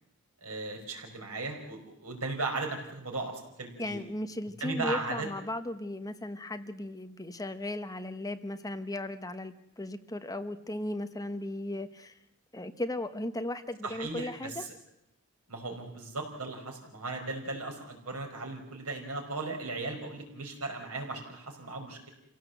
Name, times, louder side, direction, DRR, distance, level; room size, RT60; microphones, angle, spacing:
voice 1, 0.4-4.0 4.6-5.3 13.8-14.7 15.5-22.1, right 3 dB, 90° right, 3 dB, 5.2 m, -37 dB
voice 2, 3.8-12.2 12.5-14.7, left 1 dB, 15° left, 9 dB, 1.0 m, -36 dB
27.5 x 17.0 x 8.0 m, 0.82 s
head